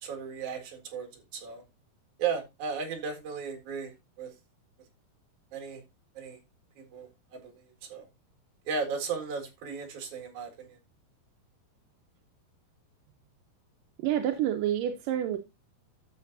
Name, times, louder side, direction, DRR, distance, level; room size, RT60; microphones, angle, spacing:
voice 1, 0.0-1.6 2.2-4.3 5.5-5.8 6.1-6.4 6.8-7.6 7.9-8.1 8.7-10.8, right 6 dB, 55° right, 3.0 m, -35 dB
voice 2, 14.0-15.4, right 11 dB, 75° right, 2.1 m, -28 dB
12.5 x 7.1 x 2.6 m
omnidirectional pair, 4.4 m